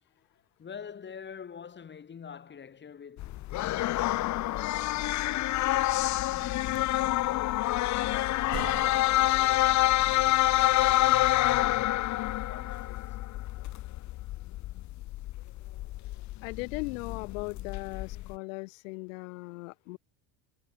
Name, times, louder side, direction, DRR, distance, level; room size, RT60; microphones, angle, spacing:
voice 1, 0.0-3.4 4.0-7.6 8.0-12.1 12.4-13.2, left 7 dB, 30° left, 1.9 m, -48 dB
sound 1, 3.2-18.3, left 16 dB, 45° left, 0.8 m, -27 dB
sound 2, 8.1-9.3, right 15 dB, 45° right, 1.0 m, -42 dB
voice 2, 16.4-20.0, left 28 dB, 80° left, 2.3 m, -38 dB
supercardioid pair, 100°, 39 cm